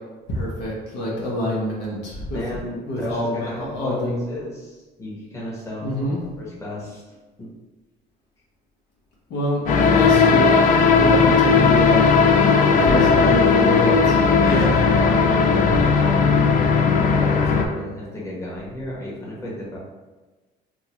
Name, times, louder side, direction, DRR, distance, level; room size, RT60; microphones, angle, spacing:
voice 1, 0.3-2.4 2.9-4.2 5.8-6.2 9.3-12.0 12.9-14.2 14.5-14.7 15.6-15.8, left 1 dB, 75° left, -5 dB, 1.1 m, -26 dB
voice 2, 2.3-4.0 4.3-7.0 7.4-7.5 9.6-10.0 12.5-13.5 14.4-19.8, left 1 dB, 15° left, -6 dB, 1.1 m, -33 dB
sound 1, 9.7-17.7, left 5 dB, 50° left, 0.4 m, -16 dB
3.7 x 2.4 x 2.9 m, 1.2 s
cardioid pair, 110°, 17 cm